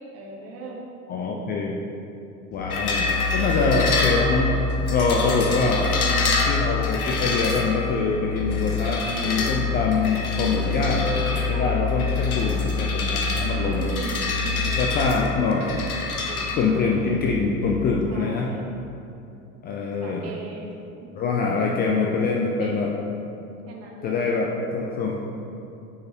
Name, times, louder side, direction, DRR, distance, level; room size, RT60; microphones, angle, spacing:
voice 1, 0.1-0.8 3.0-4.0 5.8-6.4 9.2-9.6 11.3-11.8 12.2-12.6 13.6-14.7 16.3-16.5 18.1-18.6 20.0-20.7 21.5-21.8 22.6-23.0 23.7-24.3, right 3 dB, 35° right, -1 dB, 1.2 m, -38 dB
voice 2, 1.1-1.8 2.5-4.6 4.9-5.9 6.5-11.1 11.5-13.9 14.8-15.9 16.6-18.5 19.6-20.4 21.2-22.9 24.0-25.1, left 4 dB, 25° left, -1 dB, 0.4 m, -24 dB
Musical instrument, 2.5-17.5, left 4 dB, 45° left, 1.2 m, -28 dB
sound 1, 2.7-16.5, left 4 dB, 75° left, 0.8 m, -28 dB
9.0 x 4.7 x 2.9 m, 2.7 s
figure-of-eight pair, 75°, 44 cm